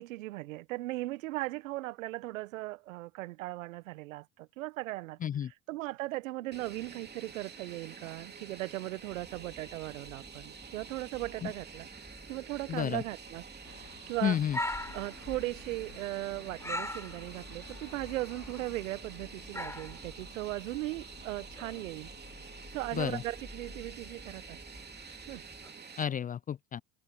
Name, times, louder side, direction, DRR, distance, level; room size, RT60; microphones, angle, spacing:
voice 1, 0.0-5.2 5.7-11.9 12.3-14.4 14.9-22.1 22.7-25.4, right 18 dB, 80° right, 1.4 m, -38 dB
Fixed-wing aircraft airplane, 6.5-26.0, right 5 dB, 25° right, 3.0 m, -49 dB
sound 1, 9.1-25.7, left 1 dB, 5° left, 5.6 m, -45 dB
voice 2, 12.7-13.0 14.2-14.6 22.9-23.2 26.0-26.8, left 9 dB, 20° left, 0.4 m, -31 dB
sound 2, 13.6-23.2, left 12 dB, 85° left, 3.0 m, -57 dB
hypercardioid pair, 70°, 39 cm